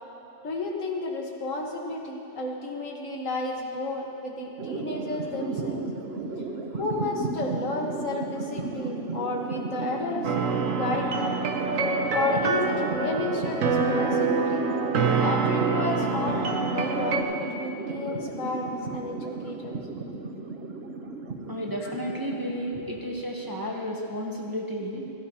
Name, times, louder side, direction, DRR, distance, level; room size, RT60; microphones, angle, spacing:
voice 1, 0.4-5.8 6.7-10.3 10.6-11.4 12.1-14.7 15.2-19.8 21.8-21.9, left 2 dB, 85° left, 0 dB, 1.8 m, -32 dB
sound 1, 4.6-24.1, right 3 dB, 55° right, 1.1 m, -34 dB
sound 2, 10.2-17.2, right 4 dB, 85° right, 1.2 m, -26 dB
voice 2, 21.5-25.1, equal, 20° right, -2 dB, 1.1 m, -32 dB
16.0 x 15.5 x 2.9 m, 2.9 s
omnidirectional pair, 1.3 m